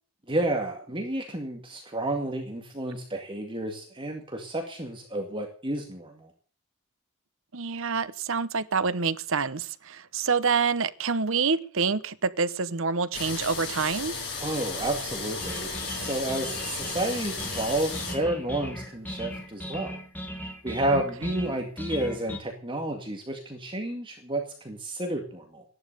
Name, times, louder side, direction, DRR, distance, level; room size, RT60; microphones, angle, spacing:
voice 1, 0.3-6.3 14.4-15.7 15.9-19.9 20.6-25.6, right 1 dB, 25° right, 2.2 m, -31 dB
voice 2, 7.5-14.1 20.9-21.0 21.4-21.5, right 5 dB, 60° right, 0.9 m, -27 dB
sound 1, 13.1-18.1, left 3 dB, 50° left, 7.7 m, -34 dB
sound 2, 15.4-22.4, equal, 10° left, 1.9 m, -38 dB
14.5 x 11.0 x 6.8 m
head